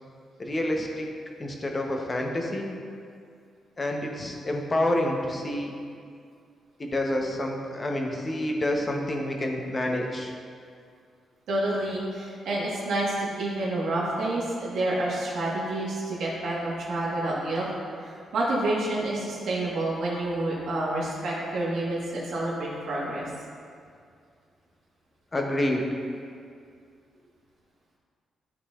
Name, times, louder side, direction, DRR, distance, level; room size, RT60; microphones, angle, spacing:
voice 1, 0.4-1.1 1.4-2.8 3.8-5.7 6.8-10.3 25.3-25.8, left 1 dB, 25° left, 1 dB, 0.8 m, -28 dB
voice 2, 11.5-17.7 17.9-23.3, right 1 dB, 80° right, -5 dB, 1.4 m, -28 dB
11.5 x 4.0 x 2.4 m, 2.3 s
cardioid pair, 105°, 0 cm